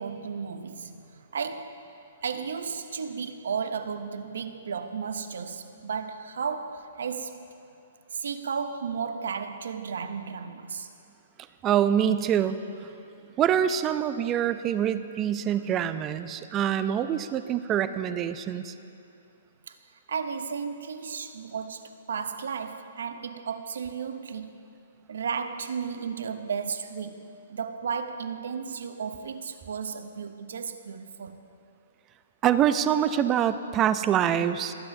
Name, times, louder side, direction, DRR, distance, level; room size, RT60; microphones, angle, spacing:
voice 1, 0.0-1.9 2.2-7.5 8.1-10.9 19.7-19.8 20.1-24.6 25.1-31.4, right 6 dB, 80° right, 0.7 m, -34 dB
voice 2, 11.6-12.6 13.4-18.7 32.4-34.7, right 9 dB, 20° right, 0.4 m, -25 dB
20.5 x 9.0 x 2.7 m
hypercardioid pair, 155°, 0 cm